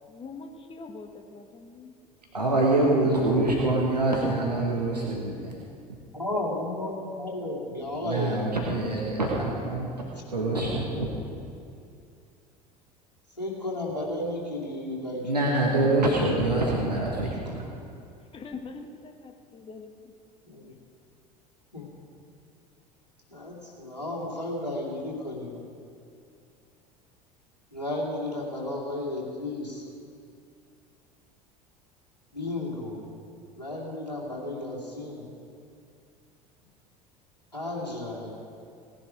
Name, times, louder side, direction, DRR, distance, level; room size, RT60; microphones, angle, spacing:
voice 1, 0.1-1.9 2.4-2.6 18.3-19.9, left 4 dB, 25° left, 5 dB, 1.5 m, -43 dB
voice 2, 2.3-5.5 8.0-9.9 10.3-11.1 15.2-17.3 17.5-17.6, right 2 dB, 85° right, -3 dB, 1.5 m, -25 dB
voice 3, 6.1-8.5 10.3-10.6 13.4-16.6 20.4-20.7 21.7-21.9 23.3-25.7 27.7-29.9 32.3-33.2 33.5-35.3 37.5-38.4, left 1 dB, 90° left, -4 dB, 2.7 m, -34 dB
18.0 x 10.5 x 5.1 m, 2.4 s
figure-of-eight pair, 70°, 20 cm